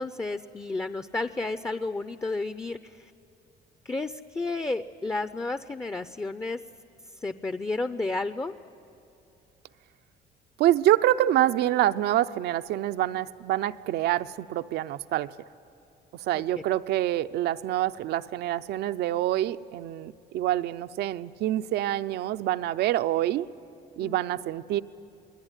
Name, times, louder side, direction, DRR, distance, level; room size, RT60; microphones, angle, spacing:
voice 1, 0.0-3.1 3.8-6.6 7.2-8.5 16.3-16.4 24.0-24.2, left 3 dB, 15° left, 11 dB, 0.6 m, -32 dB
voice 2, 10.6-15.3 16.2-23.5 24.0-24.8, right 13 dB, 75° right, 13 dB, 0.7 m, -26 dB
28.0 x 20.5 x 9.9 m, 2.6 s
cardioid pair, 110°, 17 cm